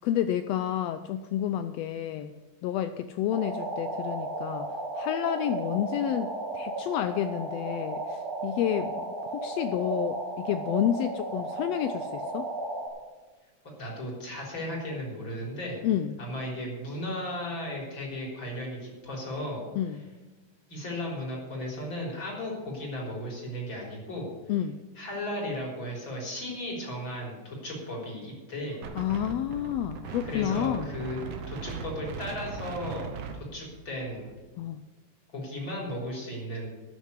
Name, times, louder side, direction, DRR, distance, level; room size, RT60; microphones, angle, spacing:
voice 1, 0.0-2.3 2.6-4.7 4.9-12.5 15.8-16.1 19.8-20.0 24.5-24.8 28.9-30.9 34.6-34.8, left 11 dB, 80° left, 11 dB, 1.5 m, -30 dB
sound 1, 3.3-12.9, right 2 dB, 45° right, 2.9 m, -34 dB
voice 2, 13.6-15.8 16.2-19.6 20.7-24.3 25.0-28.8 30.2-31.2 31.5-33.1 33.5-34.3 35.3-36.7, left 1 dB, 40° left, -2 dB, 4.4 m, -35 dB
Wind, 28.8-34.3, right 5 dB, 65° right, 2.0 m, -39 dB
13.0 x 6.6 x 8.2 m, 1.3 s
omnidirectional pair, 3.3 m